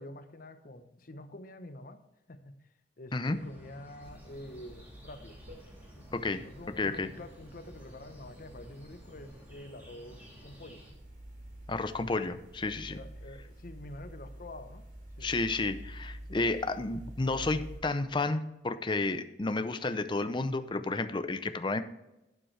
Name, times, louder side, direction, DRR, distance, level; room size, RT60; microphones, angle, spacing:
voice 1, 0.0-2.0 2.3-2.7 3.0-5.4 6.0-6.1 6.4-10.8 12.9-14.8 15.2-15.3, left 1 dB, 50° left, 8 dB, 0.9 m, -47 dB
sound 1, 3.3-10.9, equal, 10° right, 3.0 m, -53 dB
sound 2, 4.0-17.8, right 1 dB, 65° right, 3.6 m, -49 dB
voice 2, 6.1-6.4 6.8-7.1 11.7-13.0 15.2-21.8, left 3 dB, 25° left, 10 dB, 0.6 m, -31 dB
12.0 x 9.0 x 3.3 m, 0.92 s
head